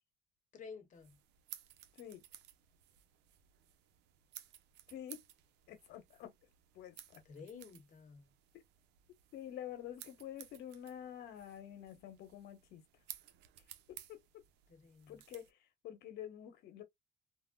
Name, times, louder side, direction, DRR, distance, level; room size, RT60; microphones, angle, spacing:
voice 1, 0.5-1.2 7.2-8.3 14.7-15.2, left 5 dB, 50° left, 0.9 m, -52 dB
sound 1, 0.9-15.5, right 12 dB, 85° right, 0.5 m, -57 dB
voice 2, 4.9-5.2 5.7-6.3 6.7-7.2 9.3-12.8 13.9-14.2 15.1-16.8, left 10 dB, 75° left, 1.1 m, -48 dB
3.4 x 2.1 x 2.2 m
cardioid pair, 110°, 17 cm